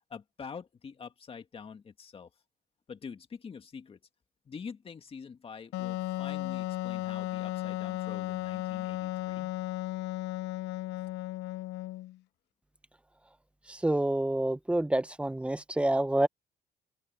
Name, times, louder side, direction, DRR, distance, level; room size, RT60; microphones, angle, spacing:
voice 1, 0.1-2.3 2.9-4.0 4.5-9.5, left 6 dB, 35° left, 2.1 m, -45 dB
Wind instrument woodwind instrument, 5.7-12.2, left 16 dB, 90° left, 0.8 m, -35 dB
voice 2, 13.7-16.3, right 1 dB, 5° right, 0.9 m, -28 dB
open air
cardioid pair, 110°, 17 cm